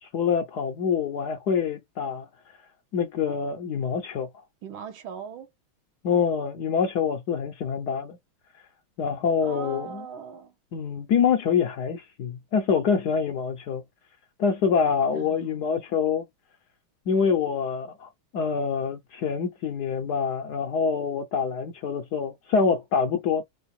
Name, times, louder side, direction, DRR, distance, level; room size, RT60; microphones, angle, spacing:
voice 1, 0.0-2.3 2.9-4.3 6.0-8.2 9.0-10.0 10.7-13.8 14.4-16.2 17.1-23.4, left 6 dB, 70° left, 1.0 m, -25 dB
voice 2, 4.6-5.5 9.4-10.5 15.1-15.6, right 6 dB, 75° right, 1.6 m, -39 dB
3.8 x 2.4 x 4.1 m
omnidirectional pair, 2.3 m